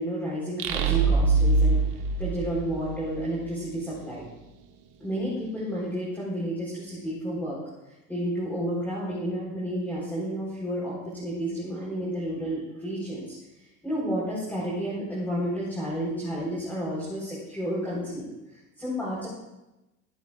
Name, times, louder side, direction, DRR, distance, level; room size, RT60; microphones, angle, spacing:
voice 1, 0.0-1.8 2.2-4.2 5.0-7.6 8.1-13.3 13.8-19.3, equal, 5° left, -7 dB, 4.2 m, -31 dB
sound 1, 0.6-3.2, right 4 dB, 60° right, 1.9 m, -23 dB
23.5 x 10.5 x 2.5 m, 0.97 s
supercardioid pair, 130°, 40 cm